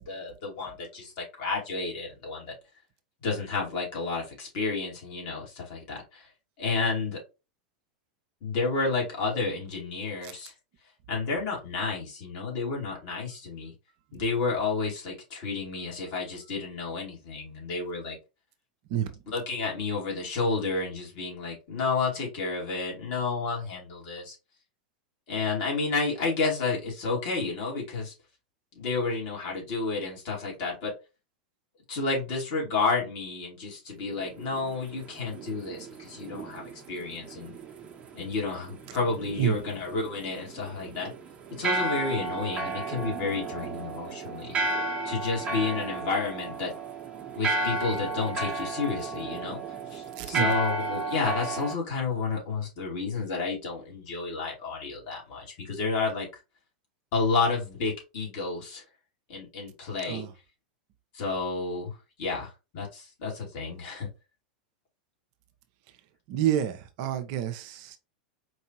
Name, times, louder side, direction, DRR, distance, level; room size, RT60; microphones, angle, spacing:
voice 1, 0.0-2.5 3.2-6.3 6.6-7.2 8.4-10.5 11.1-13.7 14.1-18.2 19.3-24.4 25.3-28.1 28.8-30.9 31.9-37.5 38.1-41.1 41.5-44.6 45.0-46.7 47.3-56.4 57.1-58.8 59.3-60.2 61.1-64.1, left 4 dB, 50° left, 2.3 m, -31 dB
sound 1, 34.1-51.8, right 3 dB, 25° right, 1.0 m, -34 dB
voice 2, 50.1-50.5 60.1-60.3 66.3-68.0, right 11 dB, 50° right, 0.7 m, -28 dB
4.6 x 2.7 x 2.9 m
figure-of-eight pair, 90°, 5 cm